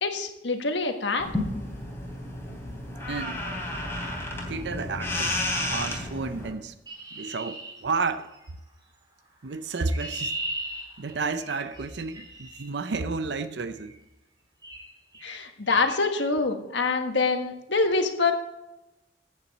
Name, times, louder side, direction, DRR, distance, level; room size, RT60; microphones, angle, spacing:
voice 1, 0.0-1.3 15.2-18.3, left 3 dB, 75° left, 1.5 m, -25 dB
sound 1, 1.2-6.5, left 1 dB, 15° left, 3.2 m, -32 dB
voice 2, 3.1-3.5 4.5-5.4 5.7-6.7 7.1-8.3 9.4-10.4 11.0-13.9, right 4 dB, 70° right, 0.6 m, -31 dB
Chirp tweet, 6.9-8.5 9.5-12.7 13.8-14.0 14.6-14.9 15.1-15.4 15.7-16.0, right 1 dB, 25° right, 2.8 m, -38 dB
14.0 x 8.7 x 4.1 m
head